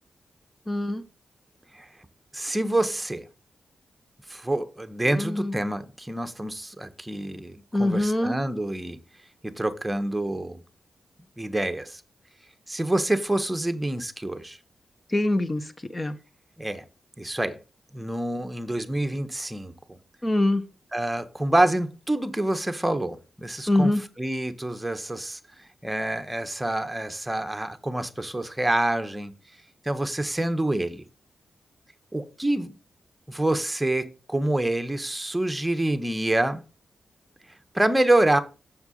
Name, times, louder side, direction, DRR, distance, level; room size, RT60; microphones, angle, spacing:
voice 1, 0.7-1.0 5.0-5.6 7.7-8.3 15.1-16.2 20.2-20.6 23.7-24.0, left 1 dB, 25° left, 1.3 m, -24 dB
voice 2, 2.3-3.3 4.3-9.0 9.4-10.6 11.4-12.0 12.7-14.6 16.6-16.8 17.2-17.6 17.9-20.0 20.9-23.9 24.2-25.4 25.8-29.3 29.8-31.0 32.1-32.7 33.3-36.6 37.7-38.4, right 1 dB, 15° right, 1.3 m, -27 dB
7.0 x 6.7 x 4.0 m
supercardioid pair, 40°, 0 cm